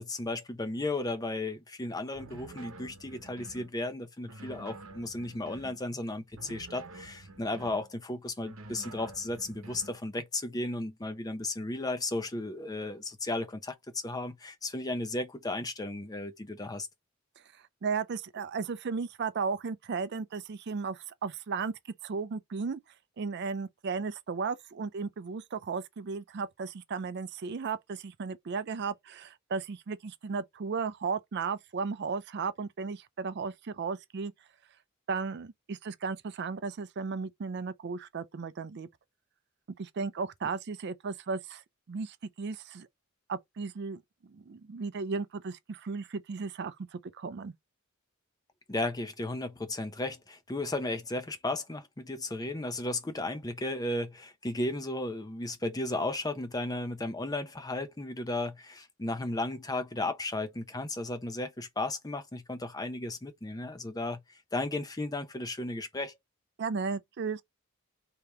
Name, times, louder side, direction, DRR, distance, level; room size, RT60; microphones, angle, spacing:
voice 1, 0.0-16.9 48.7-64.2 64.5-66.2, left 2 dB, 20° left, 0.7 m, -34 dB
sound 1, 2.1-3.7 4.2-5.8 6.3-7.9 8.4-10.0, right 3 dB, 85° right, 0.9 m, -48 dB
voice 2, 17.5-21.7 22.0-22.8 23.2-34.3 35.1-38.9 39.8-41.6 41.9-42.9 43.3-44.0 44.3-47.5 66.6-67.4, right 5 dB, 55° right, 0.4 m, -35 dB
3.3 x 2.8 x 4.7 m
head